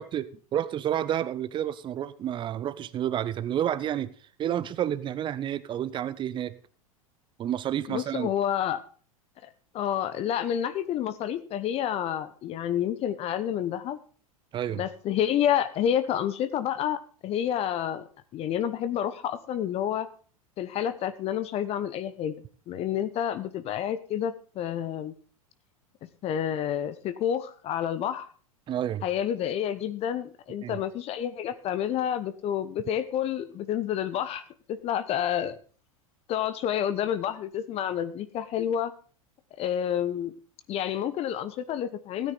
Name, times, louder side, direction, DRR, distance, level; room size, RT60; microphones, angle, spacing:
voice 1, 0.0-4.1 4.4-6.6 7.4-8.3 14.5-14.8 28.7-29.0 30.6-30.8, right 10 dB, 25° right, 0.8 m, -30 dB
voice 2, 7.9-8.8 9.4-9.5 9.7-14.0 14.7-18.1 18.3-20.1 20.6-25.1 26.2-28.3 29.0-34.4 34.7-35.6 36.3-38.9 39.6-40.3 40.7-42.3, left 10 dB, 35° left, 1.0 m, -29 dB
16.5 x 9.2 x 4.0 m
figure-of-eight pair, 85°, 18 cm